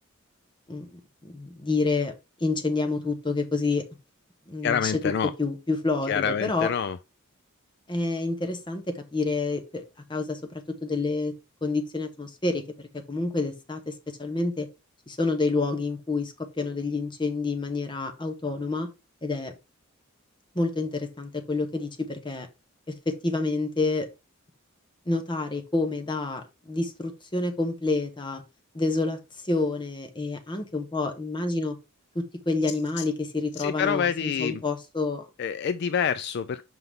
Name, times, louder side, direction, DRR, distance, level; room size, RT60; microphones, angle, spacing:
voice 1, 0.7-2.1 2.4-3.8 4.5-4.9 5.4-6.7 7.9-9.8 10.1-11.3 11.6-12.6 12.9-13.9 14.2-14.7 15.1-18.9 19.2-19.5 20.5-22.5 22.9-24.1 25.1-28.4 28.7-31.8 32.1-35.3, left 3 dB, 20° left, 1.0 m, -28 dB
voice 2, 4.6-5.3 6.1-7.0 33.0-33.1 33.6-34.6 35.4-36.6, left 7 dB, 55° left, 0.3 m, -27 dB
5.8 x 5.5 x 3.5 m
head